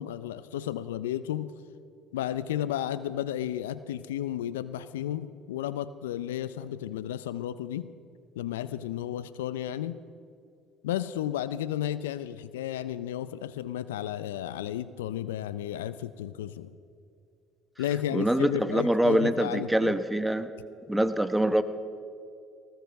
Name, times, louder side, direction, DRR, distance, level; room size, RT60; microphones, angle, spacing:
voice 1, 0.0-1.5 2.1-7.9 8.4-10.0 10.8-16.7 17.8-19.9, left 11 dB, 85° left, 15 dB, 0.4 m, -33 dB
voice 2, 18.1-20.5 20.9-21.6, right 1 dB, 5° right, 10 dB, 1.0 m, -24 dB
19.5 x 18.5 x 3.5 m, 2.4 s
hypercardioid pair, 70°, 0 cm